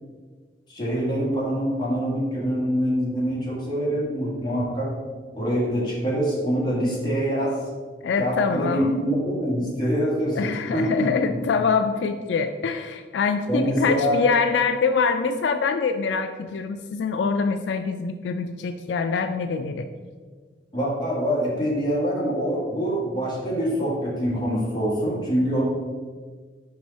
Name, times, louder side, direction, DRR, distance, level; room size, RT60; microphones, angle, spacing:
voice 1, 0.7-4.9 5.3-7.6 8.2-11.4 13.5-14.2 20.7-25.6, equal, 25° left, -6 dB, 1.9 m, -25 dB
voice 2, 8.0-9.0 10.4-19.9, left 5 dB, 80° left, 8 dB, 0.3 m, -24 dB
5.3 x 4.9 x 4.0 m, 1.5 s
head